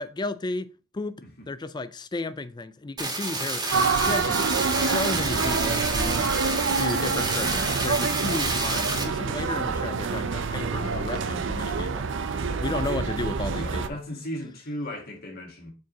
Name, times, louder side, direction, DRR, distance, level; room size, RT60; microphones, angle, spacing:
voice 1, 0.0-3.7 3.9-4.5 4.7-6.3 6.7-12.1 12.6-14.0, left 3 dB, 20° left, 0.4 m, -33 dB
sound 1, 3.0-9.0, right 3 dB, 20° right, 1.5 m, -29 dB
sound 2, 3.7-13.9, right 5 dB, 60° right, 0.5 m, -27 dB
voice 2, 13.5-15.7, equal, 45° left, 1.8 m, -36 dB
4.7 x 4.6 x 5.2 m
head